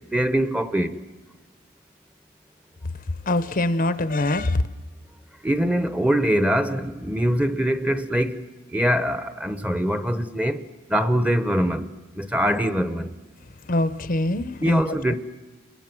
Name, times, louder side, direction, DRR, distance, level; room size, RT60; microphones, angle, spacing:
voice 1, 0.1-0.9 5.4-10.6 10.9-13.1 14.6-15.1, equal, 5° right, 0.9 m, -23 dB
voice 2, 3.3-4.6 13.7-15.1, left 2 dB, 45° left, 0.8 m, -24 dB
30.0 x 22.5 x 6.1 m
head